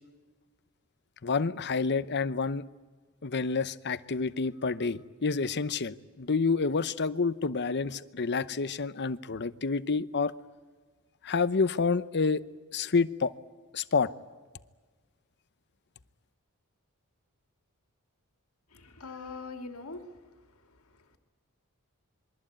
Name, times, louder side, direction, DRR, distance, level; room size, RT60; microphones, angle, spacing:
voice 1, 1.2-2.6 3.2-10.4 11.2-12.4 12.7-13.3 13.7-14.1, left 4 dB, 50° left, 0.8 m, -28 dB
voice 2, 18.7-20.2 20.6-21.2, left 3 dB, 70° left, 2.6 m, -43 dB
27.0 x 22.5 x 8.8 m
head